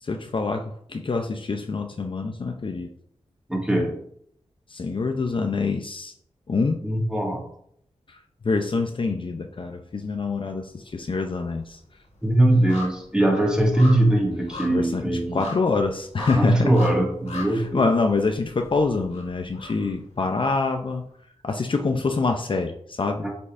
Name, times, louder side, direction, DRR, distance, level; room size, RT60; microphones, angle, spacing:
voice 1, 0.0-2.9 4.7-6.1 6.5-6.8 8.1-8.2 8.4-11.8 14.7-16.7 17.5-21.1 21.4-23.3, left 4 dB, 45° left, 4 dB, 0.6 m, -26 dB
voice 2, 3.5-3.9 6.8-7.4 12.2-15.4 16.2-17.8, right 1 dB, 5° right, -1 dB, 1.9 m, -21 dB
sound 1, 9.7-10.5 10.8-20.8 21.1-21.2, left 3 dB, 65° left, 2.1 m, -41 dB
8.1 x 5.4 x 2.6 m, 0.68 s
wide cardioid pair, 80°, 12 cm